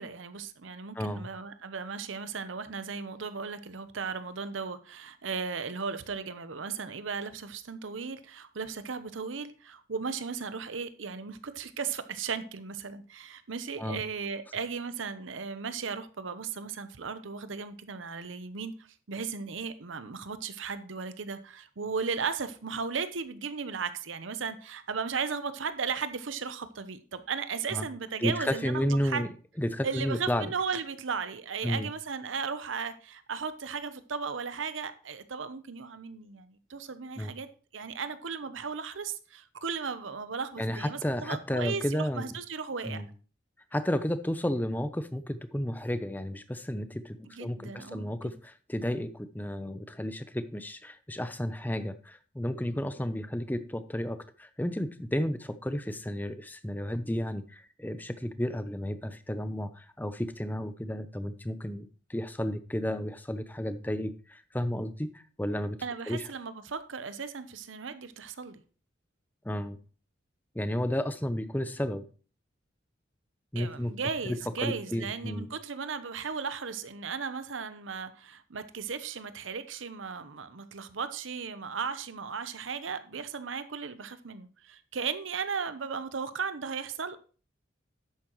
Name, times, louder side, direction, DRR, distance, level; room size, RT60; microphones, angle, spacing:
voice 1, 0.0-18.7 19.1-29.2 29.8-37.5 37.7-43.0 47.3-48.3 65.8-68.6 73.5-87.2, right 5 dB, 85° right, 0.8 m, -36 dB
voice 2, 1.0-1.3 13.8-14.0 27.7-27.9 28.2-29.3 29.6-30.5 31.6-31.9 37.2-37.3 40.6-42.2 42.8-43.1 43.7-65.8 66.1-66.2 69.4-69.8 70.5-72.0 73.5-73.9 74.2-74.4 74.6-75.5, equal, 10° left, 0.6 m, -32 dB
11.0 x 8.5 x 3.1 m
head